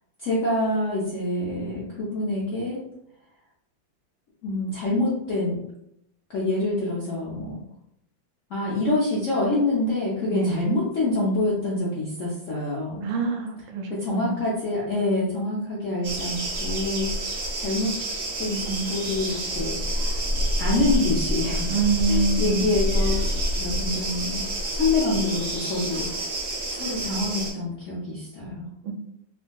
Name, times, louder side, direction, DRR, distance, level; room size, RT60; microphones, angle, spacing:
voice 1, 0.2-2.8 4.4-5.6 6.3-7.6 8.5-13.1 13.9-18.0 18.4-20.2 20.6-23.1 23.6-24.5 24.7-26.1 26.7-28.7, left 2 dB, 70° left, -6 dB, 0.7 m, -26 dB
voice 2, 10.3-10.6 13.0-14.4 21.7-22.7 28.8-28.9, right 4 dB, 85° right, 2 dB, 1.4 m, -25 dB
sound 1, 16.0-27.5, right 1 dB, 55° right, 1.2 m, -28 dB
3.5 x 2.5 x 2.2 m, 0.79 s
omnidirectional pair, 2.1 m